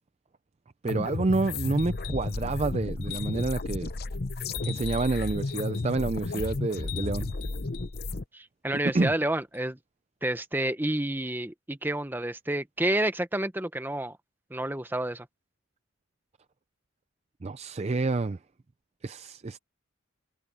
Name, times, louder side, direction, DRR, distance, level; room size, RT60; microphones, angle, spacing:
voice 1, 0.8-3.9 4.6-7.3 8.9-9.1 17.4-18.4 19.0-19.6, right 3 dB, 30° right, 0.4 m, -28 dB
sound 1, 0.9-8.2, left 3 dB, 50° left, 0.8 m, -33 dB
sound 2, 1.8-2.4 3.0-3.6 4.5-5.9 6.7-7.9 9.5-9.6, left 15 dB, 65° left, 4.6 m, -43 dB
voice 2, 8.3-9.8 10.2-14.2 14.5-15.3, right 1 dB, 10° right, 0.9 m, -29 dB
head